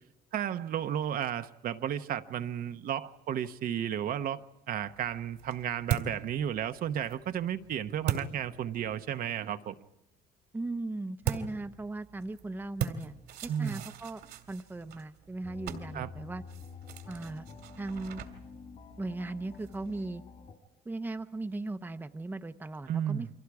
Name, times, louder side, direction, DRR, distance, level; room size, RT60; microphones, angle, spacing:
voice 1, 0.3-4.4 4.7-9.8 13.5-13.8 15.9-16.1 22.9-23.3, right 10 dB, 60° right, 9 dB, 0.9 m, -33 dB
sound 1, 4.8-9.2 11.2-20.1, right 9 dB, 85° right, 2.4 m, -40 dB
voice 2, 10.5-13.2 13.4-14.2 14.5-16.4 17.1-17.5 17.8-18.2 19.0-20.2 20.8-23.3, right 2 dB, 10° right, 9 dB, 0.7 m, -38 dB
sound 2, 15.4-20.5, left 6 dB, 45° left, 3.2 m, -48 dB
30.0 x 24.0 x 4.8 m, 0.91 s
cardioid pair, 110°, 17 cm